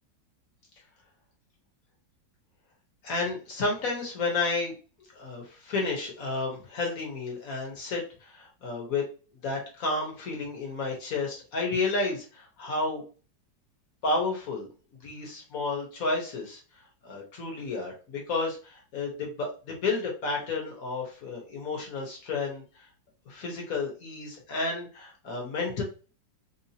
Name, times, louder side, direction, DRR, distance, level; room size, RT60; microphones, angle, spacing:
voice 1, 3.0-4.7 5.1-9.0 9.4-13.0 14.0-14.7 15.0-16.6 17.0-22.6 23.3-25.8, left 3 dB, 55° left, 0 dB, 1.4 m, -31 dB
3.6 x 2.7 x 2.8 m, 0.36 s
omnidirectional pair, 2.0 m